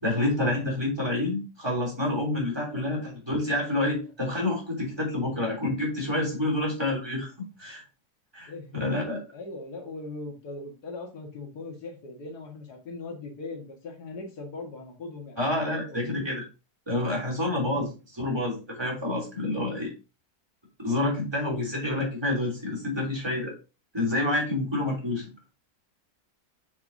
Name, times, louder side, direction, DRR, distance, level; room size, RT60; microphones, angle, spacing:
voice 1, 0.0-7.3 7.6-7.8 8.3-8.5 8.8-9.2 15.4-16.4 16.9-17.9 18.2-19.9 20.8-23.5 23.9-25.2, left 1 dB, 15° right, -1 dB, 2.9 m, -28 dB
voice 2, 2.7-3.1 8.5-8.8 9.3-16.3 17.8-17.9, left 3 dB, 90° left, 3 dB, 2.1 m, -40 dB
6.8 x 6.7 x 2.7 m, 0.30 s
omnidirectional pair, 1.6 m